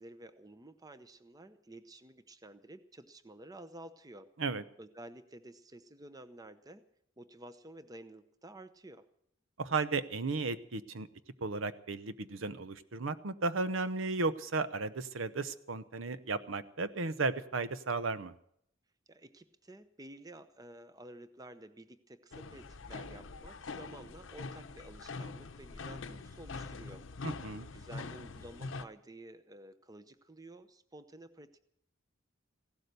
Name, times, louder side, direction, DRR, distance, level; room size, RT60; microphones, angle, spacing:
voice 1, 0.0-4.3 4.8-6.8 7.2-9.1 19.1-27.1 27.7-31.6, right 1 dB, 20° right, 11 dB, 0.8 m, -52 dB
voice 2, 9.6-11.1 11.4-18.3 27.2-27.7, right 3 dB, 85° right, 13 dB, 0.9 m, -34 dB
sound 1, 22.3-28.8, left 3 dB, 75° left, 0.8 m, -44 dB
16.0 x 12.0 x 6.8 m, 0.72 s
head